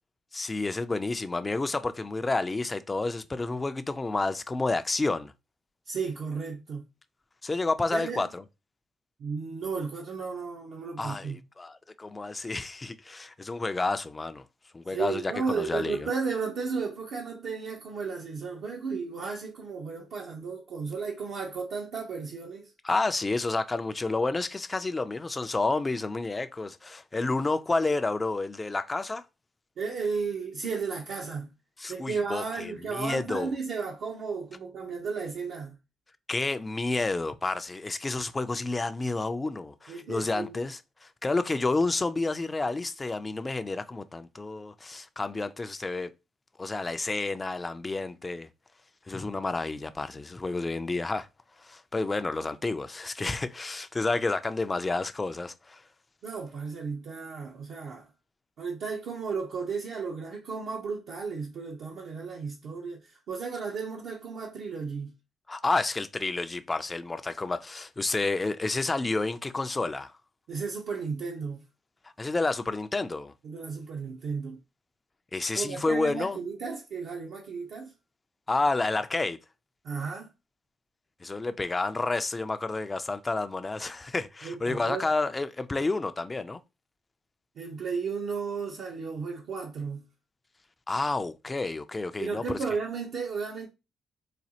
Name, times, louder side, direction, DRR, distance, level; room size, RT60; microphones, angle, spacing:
voice 1, 0.3-5.3 7.4-8.4 11.0-14.4 14.7-16.1 22.8-29.2 31.8-33.5 36.3-46.1 46.6-48.5 49.1-51.3 51.6-55.8 65.5-70.1 72.2-73.3 75.3-76.4 78.5-79.4 81.2-86.6 90.9-92.6, left 3 dB, 25° left, 0.4 m, -30 dB
voice 2, 5.9-6.9 7.9-8.2 9.2-11.4 14.9-22.7 29.8-31.5 31.9-35.8 39.9-40.6 56.2-58.1 58.6-65.1 70.5-71.6 73.4-74.6 75.5-77.9 79.8-80.3 84.4-85.1 87.6-90.1 92.2-93.7, right 5 dB, 70° right, 0.6 m, -34 dB
4.1 x 2.4 x 2.8 m
cardioid pair, 90°, 0 cm